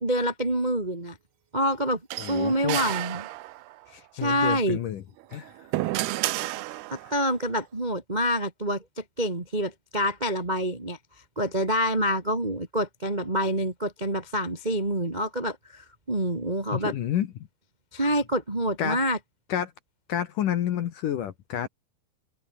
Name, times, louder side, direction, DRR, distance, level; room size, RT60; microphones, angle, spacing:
voice 1, 0.0-1.2 1.5-3.2 4.1-4.8 6.9-11.0 11.3-16.9 17.9-19.2, equal, 45° right, 0.5 m, -27 dB
sound 1, 2.1-3.8 5.2-7.2, right 18 dB, 80° right, 2.4 m, -31 dB
voice 2, 2.2-2.8 3.9-5.0 5.3-5.7 7.0-7.1 16.7-17.3 18.8-19.0 19.5-19.7 20.1-21.7, left 10 dB, 65° left, 2.3 m, -29 dB
omnidirectional pair, 5.3 m